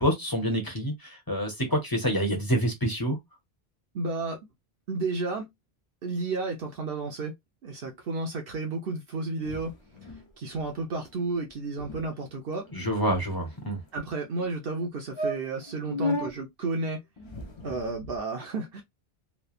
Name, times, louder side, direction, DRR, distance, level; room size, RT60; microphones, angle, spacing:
voice 1, 0.0-3.2 12.7-13.8, equal, 20° left, 1.0 m, -27 dB
voice 2, 3.9-4.4 4.9-5.5 6.0-7.3 7.6-9.7 10.4-12.7 13.9-17.0 17.6-18.8, right 3 dB, 65° right, 0.9 m, -32 dB
sound 1, 9.4-10.3 10.5-10.7 11.0-11.2 11.5-11.6 11.8-12.0 12.7-13.7 14.4-14.5 14.8-14.9 15.2-16.3 17.2-18.2, left 1 dB, 40° left, 0.4 m, -35 dB
3.2 x 2.1 x 2.4 m
omnidirectional pair, 1.0 m